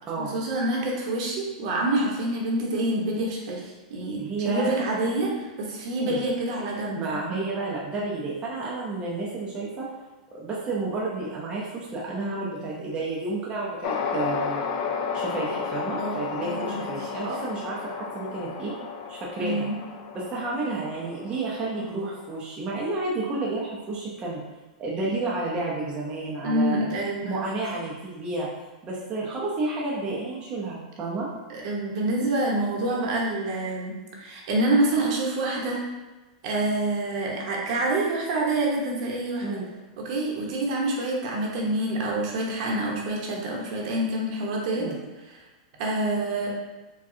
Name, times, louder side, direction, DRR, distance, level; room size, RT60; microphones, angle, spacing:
voice 1, 0.2-3.6 3.9-7.0 16.0-16.9 19.4-19.7 26.4-27.6 31.5-35.8 36.4-39.6 40.0-44.9 45.3-45.4 45.8-46.5, right 1 dB, 55° right, -2 dB, 0.9 m, -27 dB
voice 2, 4.2-4.7 6.1-6.2 7.0-9.9 10.3-14.6 15.1-18.7 19.1-19.7 20.1-24.4 24.8-26.8 27.2-28.5 28.8-31.3 39.4-39.7 44.8-44.9, right 3 dB, 25° right, -5 dB, 0.6 m, -31 dB
sound 1, 13.8-22.4, left 6 dB, 45° left, 0.4 m, -33 dB
4.8 x 2.3 x 2.7 m, 1.1 s
supercardioid pair, 150°, 4 cm